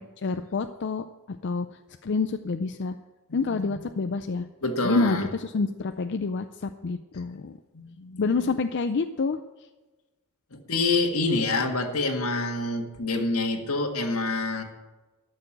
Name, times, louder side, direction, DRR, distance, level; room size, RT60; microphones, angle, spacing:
voice 1, 0.2-1.7 2.0-3.0 3.3-4.5 4.8-7.6 8.2-9.4, left 4 dB, 50° left, 8 dB, 0.5 m, -27 dB
voice 2, 3.3-3.7 4.6-5.3 7.7-8.3 10.7-14.6, left 3 dB, 75° left, 3 dB, 1.8 m, -27 dB
13.0 x 6.7 x 8.9 m, 1.2 s
head